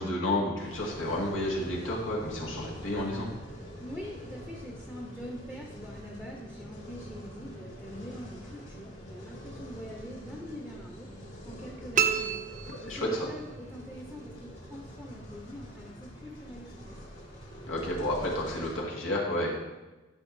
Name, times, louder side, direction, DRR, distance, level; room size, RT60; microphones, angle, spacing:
voice 1, 0.0-3.3 12.7-13.3 17.7-19.5, left 1 dB, 85° left, -3 dB, 1.9 m, -31 dB
sound 1, 0.6-18.8, equal, 65° left, 2.4 m, -45 dB
voice 2, 3.8-11.1 11.4-17.0, equal, 5° left, -1 dB, 0.8 m, -44 dB
sound 2, 11.9-13.5, right 8 dB, 40° right, 0.5 m, -30 dB
12.5 x 5.7 x 2.7 m, 1.1 s
head